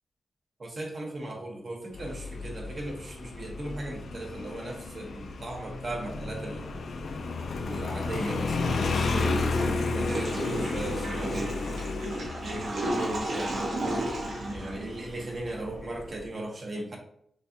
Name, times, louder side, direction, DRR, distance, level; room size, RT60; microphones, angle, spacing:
voice 1, 0.6-6.8 7.6-11.6 12.4-13.8 14.5-17.0, right 1 dB, 45° right, 0 dB, 1.1 m, -37 dB
Motorcycle, 1.9-16.2, left 3 dB, 70° left, 0.5 m, -33 dB
Water / Toilet flush, 9.1-15.3, right 1 dB, 75° right, 1.0 m, -33 dB
6.3 x 2.5 x 2.8 m, 0.68 s
wide cardioid pair, 145°, 0 cm